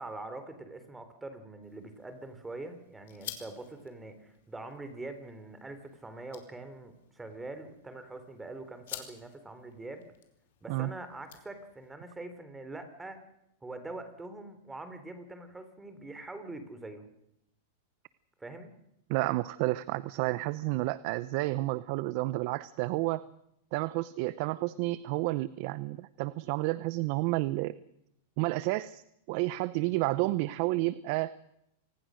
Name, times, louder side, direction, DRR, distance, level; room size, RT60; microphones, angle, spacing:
voice 1, 0.0-10.1 10.6-13.2 13.6-17.1 18.4-18.7, right 2 dB, 10° right, 9 dB, 3.6 m, -44 dB
sound 1, 1.6-11.9, left 11 dB, 70° left, 4.4 m, -51 dB
voice 2, 19.1-23.2 23.7-27.7 28.4-29.0 29.3-31.3, right 19 dB, 50° right, 17 dB, 0.8 m, -30 dB
27.0 x 19.5 x 6.5 m, 0.81 s
supercardioid pair, 140°, 0 cm